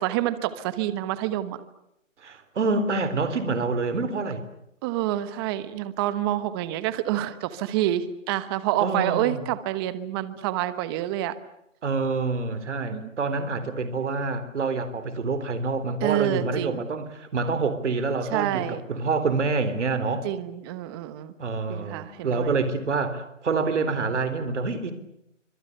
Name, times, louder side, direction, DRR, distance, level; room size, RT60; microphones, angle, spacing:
voice 1, 0.0-1.6 4.8-11.3 12.9-13.1 16.0-16.8 18.3-18.8 20.2-21.3 21.7-22.5, right 13 dB, 20° right, 14 dB, 1.1 m, -28 dB
voice 2, 2.2-4.4 8.8-9.4 11.8-20.3 21.4-24.9, right 4 dB, 65° right, 12 dB, 3.9 m, -27 dB
28.0 x 25.5 x 6.7 m, 0.80 s
hypercardioid pair, 155°, 38 cm